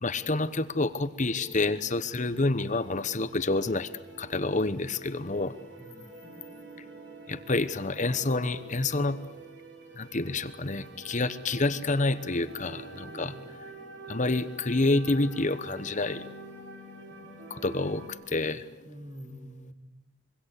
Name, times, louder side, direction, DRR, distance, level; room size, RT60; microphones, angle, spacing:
voice 1, 0.0-3.9 4.2-5.5 7.3-9.2 10.0-13.3 14.1-16.3 17.5-18.6, left 2 dB, 40° left, 13 dB, 1.0 m, -28 dB
sound 1, 1.2-18.1, right 2 dB, 65° right, 5.2 m, -47 dB
voice 2, 5.8-6.2 13.1-13.3 18.8-19.7, equal, 25° right, 5 dB, 2.8 m, -45 dB
26.0 x 24.0 x 8.3 m, 0.94 s
head